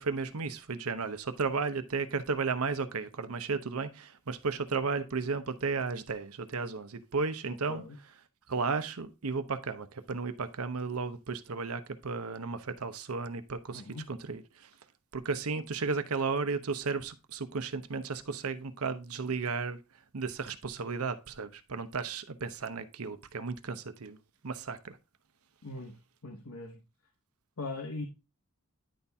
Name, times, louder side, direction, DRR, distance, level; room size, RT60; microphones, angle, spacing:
voice 1, 0.0-7.8 8.5-13.8 14.1-14.7 15.1-19.8 20.1-24.2 24.4-25.0, right 4 dB, 80° right, 0.8 m, -34 dB
voice 2, 7.5-8.0 13.7-14.1 25.6-25.9 26.2-26.8 27.6-28.0, left 3 dB, 90° left, 1.2 m, -40 dB
10.0 x 4.2 x 3.5 m
head